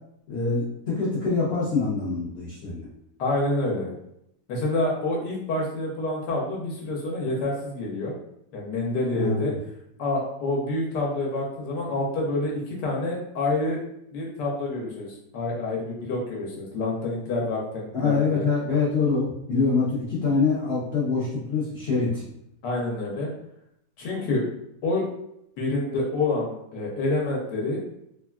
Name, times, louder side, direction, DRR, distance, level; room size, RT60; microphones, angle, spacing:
voice 1, 0.3-2.9 9.1-9.6 17.9-22.2, left 4 dB, 55° left, -8 dB, 0.7 m, -25 dB
voice 2, 3.2-3.9 4.5-8.2 8.5-9.5 10.0-13.8 14.1-18.5 22.6-23.3 24.0-24.5 24.8-25.1 25.6-27.8, left 2 dB, 80° left, -2 dB, 1.3 m, -27 dB
3.3 x 2.3 x 2.2 m, 0.79 s
omnidirectional pair, 1.8 m